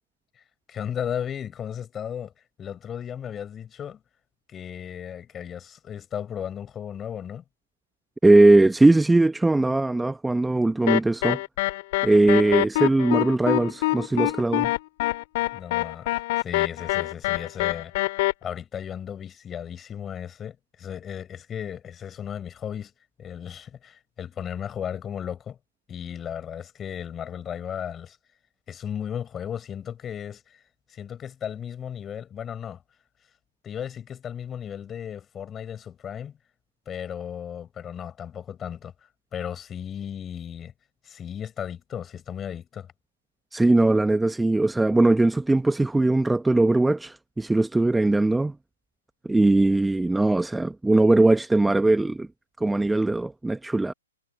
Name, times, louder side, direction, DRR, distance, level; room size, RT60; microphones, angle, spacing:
voice 1, 0.7-2.3 2.6-4.0 4.5-7.4 15.5-18.1 18.4-22.9 23.2-25.6 25.9-28.2 28.7-30.6 30.9-32.8 33.6-36.4 36.9-40.7 41.0-42.9, left 8 dB, 15° left, 5.6 m, -35 dB
voice 2, 8.2-11.4 12.0-14.7 43.5-48.5 49.2-52.3 52.6-53.9, right 2 dB, 5° right, 0.8 m, -20 dB
sound 1, 10.9-18.3, left 19 dB, 45° left, 2.1 m, -25 dB
hypercardioid pair, 135°, 0 cm